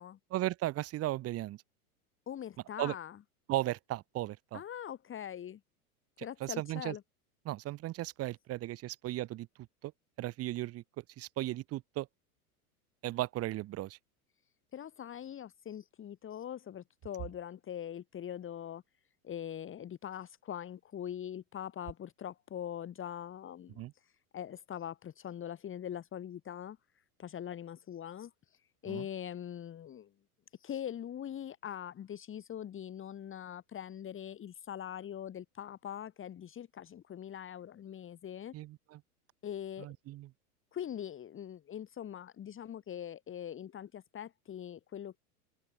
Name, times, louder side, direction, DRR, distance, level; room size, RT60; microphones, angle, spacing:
voice 1, 0.3-1.6 2.8-2.9 3.5-4.6 6.4-6.9 7.5-9.5 9.8-9.9 10.2-10.8 11.2-12.1 13.0-14.0 23.8-23.9 28.9-29.0 38.5-39.0 39.8-40.3, right 16 dB, 30° right, 0.9 m, -36 dB
voice 2, 2.3-3.2 4.5-5.6 6.2-7.0 14.7-18.8 19.2-30.1 30.5-38.5 39.4-39.9 40.7-45.2, left 10 dB, 25° left, 2.7 m, -42 dB
hypercardioid pair, 110°, 45 cm